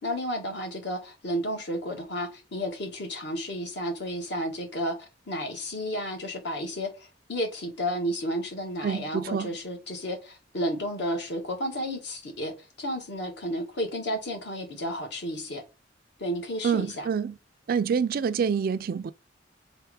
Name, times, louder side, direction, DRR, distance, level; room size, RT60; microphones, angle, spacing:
voice 1, 0.0-5.0 5.3-15.6 16.2-17.1, equal, 65° left, 1.5 m, -32 dB
voice 2, 8.8-9.5 16.6-17.4 17.7-19.1, right 6 dB, 55° right, 0.3 m, -27 dB
3.5 x 3.2 x 4.6 m
head